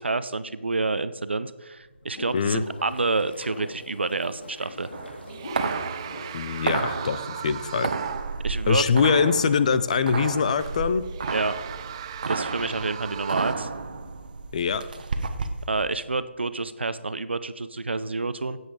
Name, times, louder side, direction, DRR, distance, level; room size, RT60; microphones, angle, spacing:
voice 1, 0.0-4.9 7.7-7.9 8.4-8.9 11.3-11.5 12.3-13.7 15.7-18.6, right 3 dB, 65° right, 14 dB, 0.8 m, -28 dB
sound 1, 1.8-7.2, left 1 dB, 60° left, 2.8 m, -42 dB
sound 2, 4.8-4.9 5.3-8.5 8.9-9.0 10.5-13.6, right 9 dB, 25° right, 0.4 m, -38 dB
sound 3, 4.9-15.7, right 4 dB, 45° right, 1.2 m, -32 dB
voice 2, 6.3-7.9 8.7-11.0 14.5-14.8, left 6 dB, 35° left, 14 dB, 0.6 m, -23 dB
17.5 x 8.2 x 4.9 m, 1.2 s
figure-of-eight pair, 145°, 7 cm